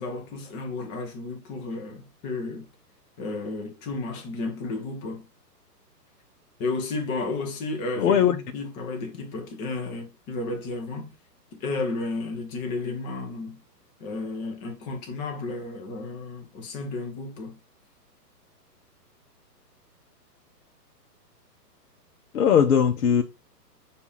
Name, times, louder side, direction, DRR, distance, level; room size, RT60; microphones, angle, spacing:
voice 1, 0.0-2.7 3.2-5.2 6.6-11.1 11.5-13.6 14.0-17.6, left 3 dB, 15° left, 0.6 m, -32 dB
voice 2, 8.0-8.4 22.3-23.2, left 8 dB, 60° left, 0.9 m, -19 dB
6.8 x 2.6 x 5.4 m
hypercardioid pair, 145°, 49 cm